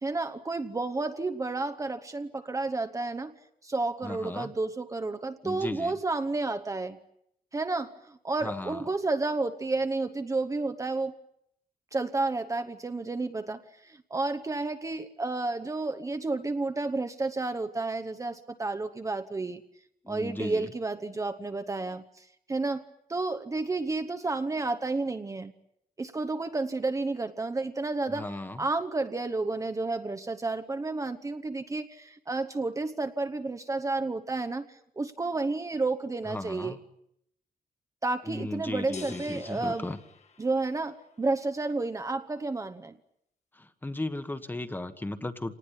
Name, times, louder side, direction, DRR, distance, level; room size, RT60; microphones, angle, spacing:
voice 1, 0.0-3.3 3.6-7.0 7.5-11.1 11.9-19.6 20.1-22.8 23.1-25.5 26.0-28.2 28.6-36.8 38.0-39.9 40.4-43.0, right 3 dB, 20° right, 8 dB, 0.9 m, -31 dB
voice 2, 4.0-4.5 5.4-6.0 8.4-8.8 20.0-20.7 28.1-28.6 36.2-36.8 38.2-40.0 43.5-45.5, left 2 dB, 15° left, 10 dB, 1.3 m, -36 dB
sound 1, 38.9-41.0, left 5 dB, 50° left, 1.8 m, -46 dB
27.0 x 19.5 x 10.0 m, 0.75 s
wide cardioid pair, 175°, 15 cm